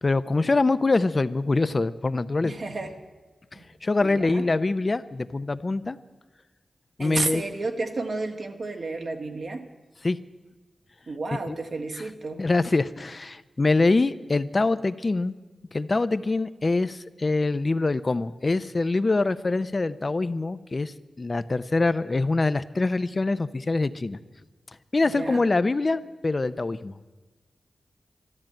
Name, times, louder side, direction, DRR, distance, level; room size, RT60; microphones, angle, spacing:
voice 1, 0.0-2.5 3.5-6.0 7.0-7.4 10.0-10.2 11.5-11.6 12.4-15.3 15.7-24.2 24.9-27.0, left 3 dB, 40° left, 13 dB, 0.6 m, -24 dB
voice 2, 2.4-2.9 3.5-3.6 4.0-4.4 7.0-9.6 11.1-12.4 25.0-25.4, right 3 dB, 70° right, 4 dB, 1.7 m, -31 dB
13.0 x 12.0 x 8.9 m, 1.2 s
cardioid pair, 65°, 0 cm